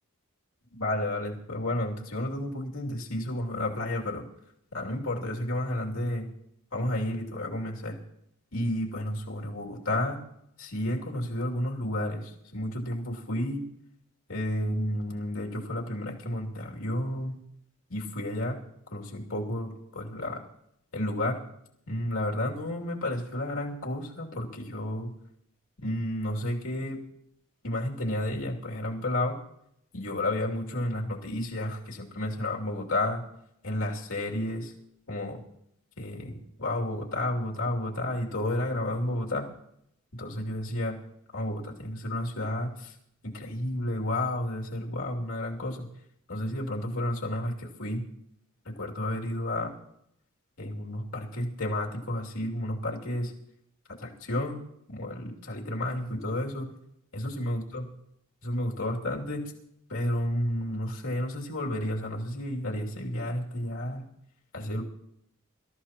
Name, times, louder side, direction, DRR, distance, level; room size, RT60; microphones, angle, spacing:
voice 1, 0.7-4.3 4.7-6.3 6.7-8.0 8.5-10.2 10.6-13.7 14.3-17.4 17.9-18.6 18.9-20.4 20.9-21.4 21.9-25.1 25.8-27.0 27.6-29.4 29.9-33.2 33.6-34.7 35.1-35.4 36.0-39.5 40.1-41.0 41.3-43.0 43.2-45.9 46.3-48.0 48.6-49.7 50.6-53.3 54.0-54.6 54.9-56.7 57.1-57.9 58.4-59.5 59.9-64.1 64.5-64.8, left 1 dB, 75° left, -1 dB, 2.7 m, -31 dB
25.0 x 13.5 x 3.0 m, 0.75 s
head